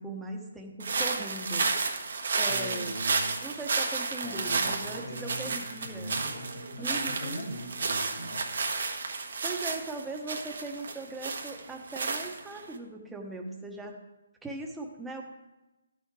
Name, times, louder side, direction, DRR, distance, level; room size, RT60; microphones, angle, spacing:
voice 1, 0.0-1.7 2.3-2.9 3.4-6.2 6.8-7.4 9.4-13.9 14.4-15.2, right 2 dB, 5° right, 1 dB, 1.0 m, -39 dB
sound 1, 0.8-12.7, right 4 dB, 65° right, 1.3 m, -32 dB
voice 2, 2.5-3.3 4.2-8.5, equal, 65° left, -1 dB, 2.8 m, -40 dB
11.5 x 6.6 x 4.8 m, 1.0 s
hypercardioid pair, 155°, 0 cm